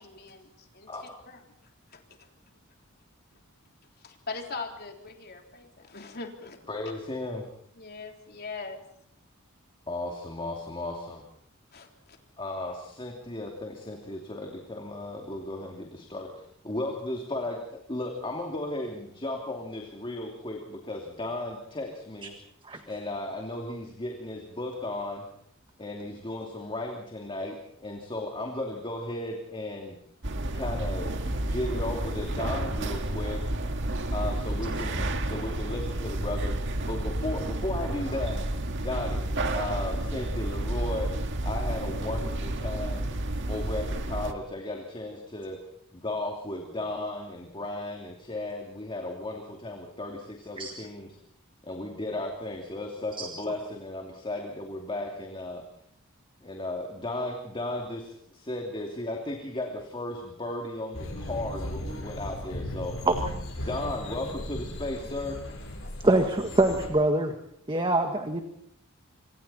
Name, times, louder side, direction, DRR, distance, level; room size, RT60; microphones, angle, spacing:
voice 1, 0.0-0.9 1.3-1.4 1.9-2.0 4.0-6.7 7.8-8.8 11.7-12.2, left 4 dB, 50° left, 3 dB, 3.7 m, -41 dB
voice 2, 6.7-7.5 9.9-11.2 12.4-22.3 22.9-25.2 25.8-30.0 30.5-33.4 34.1-36.6 36.8-38.4 38.8-39.2 39.5-41.1 41.4-43.1 43.5-45.6 45.9-51.1 51.6-55.6 56.4-63.0 63.6-65.4, left 2 dB, 25° left, 1 dB, 2.8 m, -35 dB
sound 1, 30.2-44.3, right 1 dB, 60° right, 2.0 m, -31 dB
sound 2, 60.9-66.9, left 1 dB, 70° left, 7.2 m, -37 dB
voice 3, 66.0-67.3 67.7-68.4, right 2 dB, 25° right, 5 dB, 1.7 m, -24 dB
28.0 x 25.5 x 4.3 m, 0.70 s
head